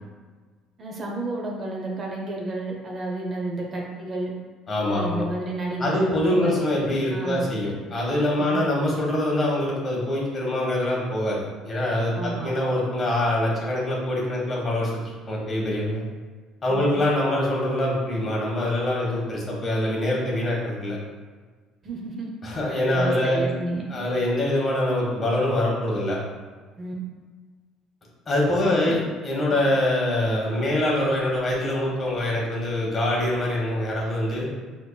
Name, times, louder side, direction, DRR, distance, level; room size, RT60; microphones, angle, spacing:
voice 1, 0.8-4.3 4.9-6.5 7.1-7.5 8.4-8.5 12.1-12.5 16.7-16.8 21.8-22.3 22.9-23.8 26.8-26.9 28.6-29.0, right 2 dB, 40° right, -1 dB, 0.7 m, -31 dB
voice 2, 4.7-5.3 5.8-14.9 15.3-16.0 16.6-21.0 22.4-23.4 23.9-26.2 28.3-34.5, left 1 dB, 35° left, -3 dB, 1.2 m, -24 dB
4.3 x 2.9 x 2.2 m, 1.4 s
supercardioid pair, 95°, 0 cm